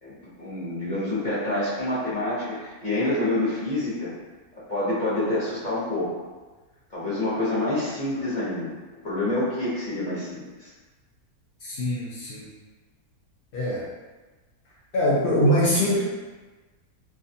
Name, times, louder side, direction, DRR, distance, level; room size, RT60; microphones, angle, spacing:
voice 1, 0.0-4.1 4.5-6.2 6.9-8.7 9.0-10.7, left 1 dB, 35° left, -11 dB, 0.9 m, -27 dB
voice 2, 11.6-12.5 13.5-13.8 14.9-16.0, equal, 80° left, -6 dB, 0.5 m, -23 dB
2.6 x 2.4 x 2.6 m, 1.2 s
omnidirectional pair, 1.6 m